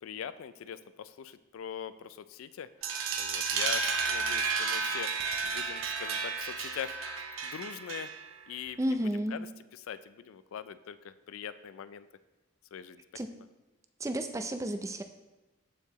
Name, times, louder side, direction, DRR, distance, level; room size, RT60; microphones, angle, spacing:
voice 1, 0.0-2.7 3.2-5.1 5.5-7.0 7.4-8.1 8.5-12.1 12.7-13.0, left 8 dB, 85° left, 14 dB, 0.4 m, -42 dB
sound 1, 2.8-8.4, right 5 dB, 80° right, 0.8 m, -32 dB
voice 2, 8.8-9.5 13.1-13.3 14.0-15.0, right 1 dB, 15° right, 7 dB, 0.4 m, -32 dB
13.5 x 4.7 x 3.0 m, 1.1 s
head